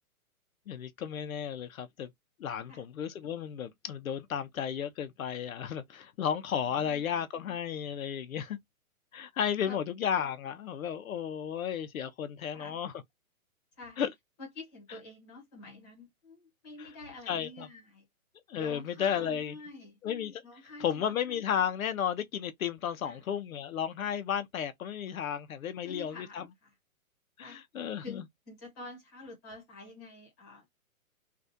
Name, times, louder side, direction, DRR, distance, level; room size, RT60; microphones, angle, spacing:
voice 1, 0.7-2.1 2.4-8.6 9.1-12.9 14.0-14.1 16.8-16.9 17.3-17.7 18.5-19.5 20.0-20.4 20.8-26.5 27.4-28.2, left 8 dB, 70° left, 0.6 m, -33 dB
voice 2, 14.4-18.0 18.6-20.0 20.4-21.1 23.0-23.2 25.8-26.7 27.4-27.6 28.0-30.7, left 2 dB, 15° left, 1.0 m, -47 dB
3.4 x 2.3 x 2.6 m
hypercardioid pair, 175°, 43 cm